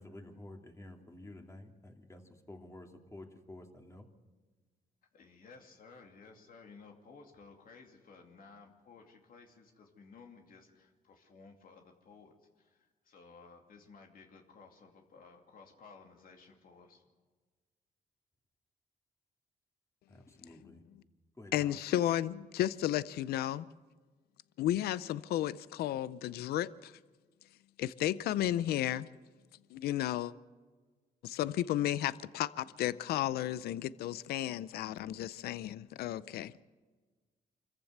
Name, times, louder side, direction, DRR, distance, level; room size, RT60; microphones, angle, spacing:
voice 1, 0.0-4.1 20.1-20.8 21.4-21.8, left 1 dB, 20° left, 2.7 m, -51 dB
voice 2, 5.1-17.1, left 4 dB, 65° left, 2.6 m, -56 dB
voice 3, 21.5-23.7 24.6-26.9 27.8-29.1 29.7-30.3 31.2-36.5, left 13 dB, 90° left, 0.5 m, -33 dB
25.5 x 14.5 x 8.0 m
cardioid pair, 80°, 16 cm